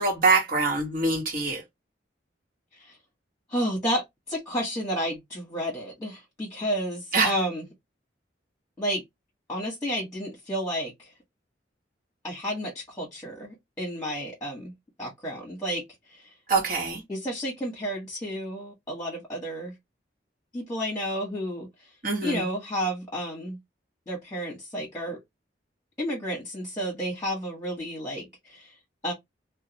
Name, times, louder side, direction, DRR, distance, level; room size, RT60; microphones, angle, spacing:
voice 1, 0.0-1.6 7.1-7.3 16.5-17.0 22.0-22.4, right 3 dB, 50° right, 1.2 m, -24 dB
voice 2, 3.5-7.6 8.8-9.0 9.5-11.1 12.2-14.7 15.0-15.8 16.1-16.3 17.1-19.7 20.5-21.9 22.2-23.6 24.1-25.2 26.0-28.7 29.0-29.1, equal, 20° left, 1.1 m, -31 dB
2.3 x 2.2 x 2.8 m
head